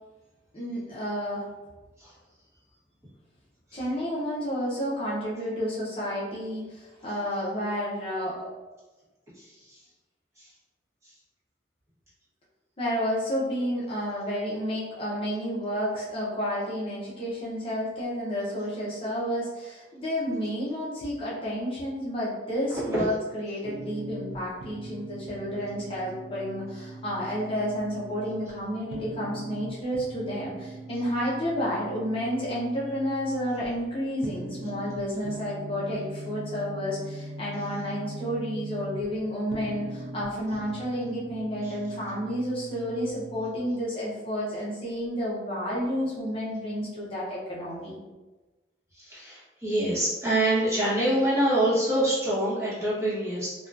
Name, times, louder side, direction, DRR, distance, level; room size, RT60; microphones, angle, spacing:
voice 1, 0.5-1.5 3.7-8.5 12.8-48.0, equal, 30° left, -7 dB, 0.5 m, -31 dB
voice 2, 9.4-9.8 10.4-10.5 22.9-23.0 41.6-41.7 48.9-53.7, right 1 dB, 15° right, -9 dB, 1.0 m, -26 dB
sound 1, 23.6-43.5, right 1 dB, 85° right, 0.4 m, -41 dB
2.6 x 2.2 x 2.3 m, 1.2 s
head